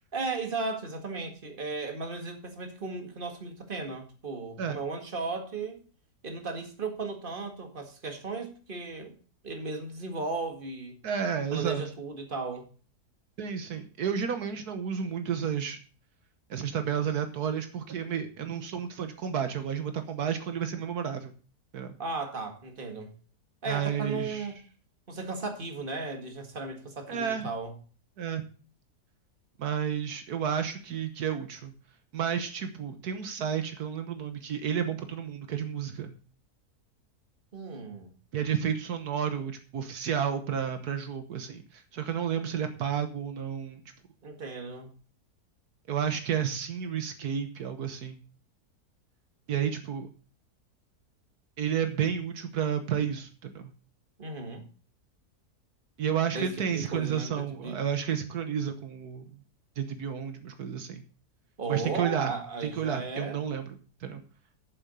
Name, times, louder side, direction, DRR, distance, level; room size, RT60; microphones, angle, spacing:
voice 1, 0.1-5.8 6.2-9.2 9.4-10.9 11.5-12.6 22.0-23.1 23.6-24.6 25.1-27.7 37.5-38.1 44.2-44.9 54.2-54.6 56.3-57.8 61.6-63.4, right 3 dB, 35° right, 5 dB, 2.1 m, -35 dB
voice 2, 11.0-11.8 13.4-15.8 16.5-21.3 21.7-22.0 23.7-24.5 27.1-27.5 28.2-28.4 29.6-31.7 32.1-36.1 38.3-43.8 45.9-48.2 49.5-50.1 51.6-53.6 56.0-59.4 59.8-61.0 61.7-62.3 62.6-64.2, right 8 dB, 75° right, 8 dB, 1.6 m, -31 dB
8.8 x 7.4 x 6.9 m, 0.38 s
omnidirectional pair, 1.7 m